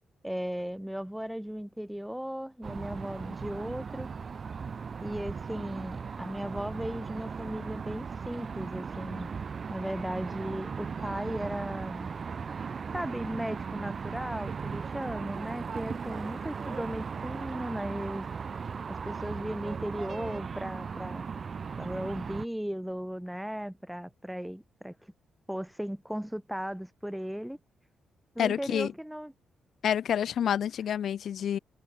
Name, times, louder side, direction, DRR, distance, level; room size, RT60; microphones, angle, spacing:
voice 1, 0.2-4.1 5.0-9.3 9.7-12.1 12.9-18.3 18.9-21.3 21.8-25.1 25.5-27.6 28.4-29.3, equal, 5° right, 2.6 m, -36 dB
sound 1, 2.6-22.5, right 5 dB, 40° right, 5.9 m, -37 dB
voice 2, 28.4-28.9 29.8-31.6, left 9 dB, 65° left, 1.6 m, -28 dB
cardioid pair, 115°, 0 cm